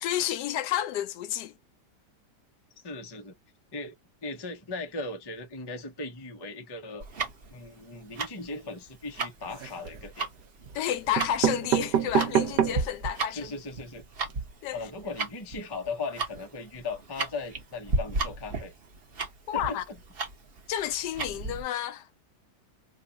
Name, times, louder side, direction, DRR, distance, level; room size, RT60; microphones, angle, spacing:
voice 1, 0.0-1.5 10.7-13.5 14.6-14.9 19.5-19.8 20.7-22.1, left 11 dB, 80° left, 1.2 m, -30 dB
voice 2, 2.8-3.3 3.7-3.9 4.2-7.1 7.5-10.3 13.3-14.0 14.7-18.7 19.5-20.0, left 3 dB, 30° left, 0.4 m, -38 dB
Tick-tock, 7.0-21.6, right 3 dB, 40° right, 0.9 m, -35 dB
sound 1, 9.4-10.0 10.8-10.9 11.2-13.0 13.5-13.6 13.7-13.8 14.1-14.3, right 9 dB, 85° right, 1.3 m, -27 dB
3.1 x 2.4 x 3.9 m
omnidirectional pair, 1.8 m